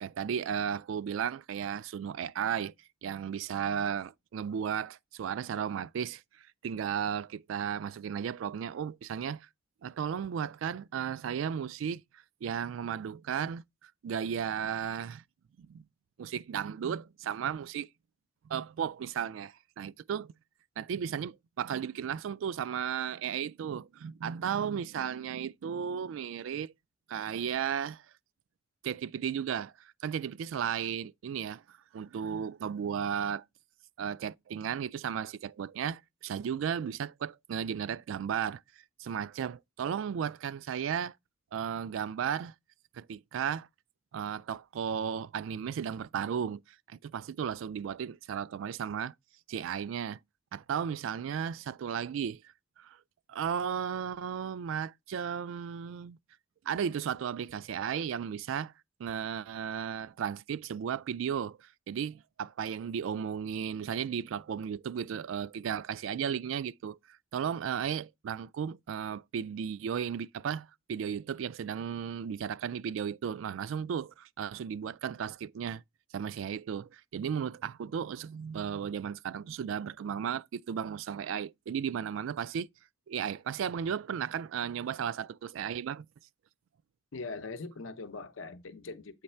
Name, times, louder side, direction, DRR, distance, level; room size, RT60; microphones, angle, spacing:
voice 1, 0.0-2.7 3.0-6.2 6.6-9.5 9.8-12.0 12.4-15.2 15.6-15.8 16.2-17.9 18.4-20.3 20.8-26.7 27.1-28.0 28.8-33.4 34.0-38.6 39.0-41.1 41.5-42.5 42.9-43.7 44.1-46.6 46.9-49.1 49.5-50.2 50.5-52.4 52.8-53.0 53.3-56.2 56.7-58.7 59.0-75.8 76.1-82.7 83.1-86.1, right 8 dB, 70° right, 0.3 m, -35 dB
voice 2, 87.1-89.2, left 3 dB, 75° left, 0.7 m, -41 dB
8.1 x 3.2 x 4.3 m
head